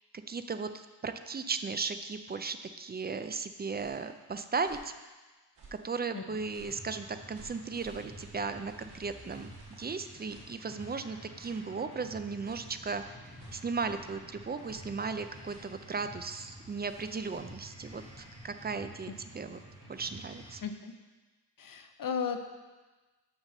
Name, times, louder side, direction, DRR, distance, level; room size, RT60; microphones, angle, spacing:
voice 1, 0.3-4.9 5.7-9.5 9.8-19.6 19.9-20.6, right 4 dB, 25° right, 9 dB, 0.4 m, -36 dB
sound 1, 3.5-4.1 4.6-5.0 5.5-6.0 6.5-6.9 7.3-11.1 11.4-11.7 12.4-12.8 13.4-13.8 14.6-15.0 15.4-15.8 16.2-16.5 16.9-17.1, right 2 dB, 85° right, 2.3 m, -57 dB
sound 2, 6.3-20.6, right 1 dB, 15° left, 2.0 m, -50 dB
sound 3, 12.8-20.7, left 2 dB, 85° left, 2.2 m, -61 dB
voice 2, 20.6-20.9 21.6-22.4, left 6 dB, 55° left, 7 dB, 0.7 m, -34 dB
6.0 x 5.6 x 6.5 m, 1.2 s
wide cardioid pair, 120°, 41 cm